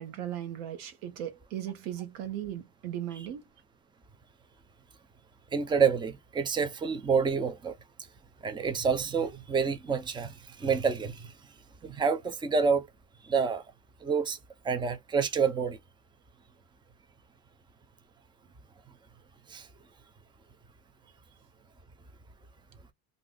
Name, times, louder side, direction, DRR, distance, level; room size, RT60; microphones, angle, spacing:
voice 1, 0.0-3.5, right 11 dB, 90° right, 1.1 m, -37 dB
voice 2, 5.5-7.8 8.4-11.3 11.8-12.9 13.3-13.6 14.0-14.4 14.6-15.8 19.5-19.7, right 5 dB, 10° right, 0.5 m, -28 dB
2.5 x 2.0 x 3.8 m
supercardioid pair, 100°, 44 cm